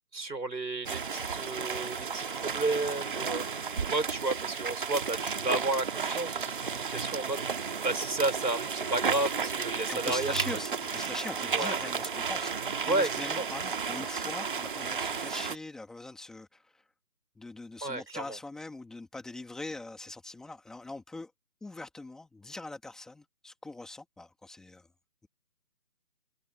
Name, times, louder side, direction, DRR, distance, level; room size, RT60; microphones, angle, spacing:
voice 1, 0.1-7.4 7.8-10.3 11.5-11.8 12.9-13.4 17.8-18.4, right 2 dB, 90° right, 5.4 m, -32 dB
sound 1, 0.8-15.6, right 6 dB, 30° right, 1.9 m, -33 dB
voice 2, 9.9-16.8 17.4-21.3 21.6-24.9, left 2 dB, ahead, 1.9 m, -42 dB
figure-of-eight pair, 165°, 50 cm